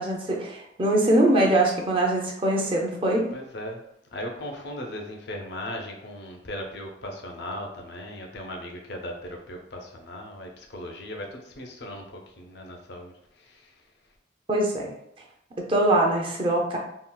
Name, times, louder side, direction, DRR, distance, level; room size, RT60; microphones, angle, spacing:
voice 1, 0.0-3.3 14.5-14.9 15.7-16.8, right 1 dB, 30° right, 0 dB, 0.5 m, -22 dB
voice 2, 3.3-3.8 4.1-13.7, left 1 dB, 60° left, 2 dB, 0.6 m, -38 dB
3.7 x 2.3 x 2.2 m, 0.77 s
head